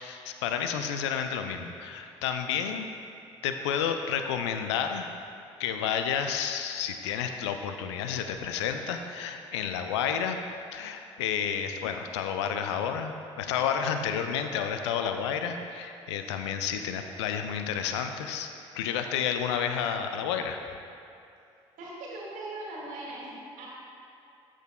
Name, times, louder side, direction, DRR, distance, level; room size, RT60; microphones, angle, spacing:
voice 1, 0.0-2.9 3.4-5.1 5.6-10.4 10.7-18.5 18.7-20.6, left 8 dB, 70° left, 6 dB, 0.5 m, -30 dB
voice 2, 21.8-23.7, right 2 dB, 60° right, -4 dB, 1.8 m, -40 dB
13.0 x 6.2 x 2.3 m, 2.7 s
figure-of-eight pair, 45°, 15 cm